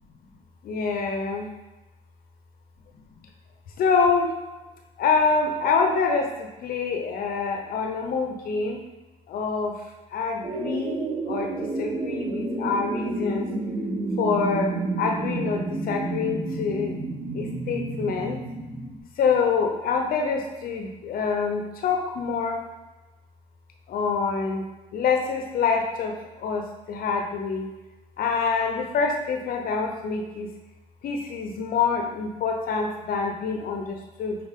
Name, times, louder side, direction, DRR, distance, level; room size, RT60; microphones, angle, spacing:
voice 1, 0.6-1.5 3.8-4.3 5.0-8.8 9.3-9.7 10.1-11.0 11.3-13.5 14.2-14.7 15.0-16.9 17.3-18.4 19.2-22.6 23.9-24.6 24.9-26.1 26.4-26.6 26.9-27.7 28.2-30.5 31.0-34.4, left 5 dB, 60° left, 3 dB, 0.8 m, -26 dB
sound 1, 10.4-19.0, right 2 dB, 25° right, 1.0 m, -30 dB
6.3 x 4.4 x 3.6 m, 1.1 s
cardioid pair, 110°, 17 cm